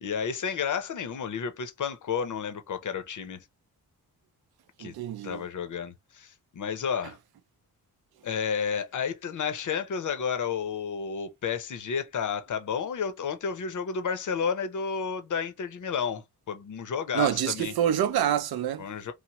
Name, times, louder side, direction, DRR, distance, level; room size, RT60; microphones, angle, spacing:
voice 1, 0.0-3.4 4.8-4.9 5.2-7.2 8.2-17.7 18.8-19.1, left 6 dB, 50° left, 0.7 m, -31 dB
voice 2, 4.8-5.4 17.1-18.9, right 10 dB, 70° right, 0.6 m, -27 dB
3.2 x 2.1 x 2.8 m
cardioid pair, 75°, 39 cm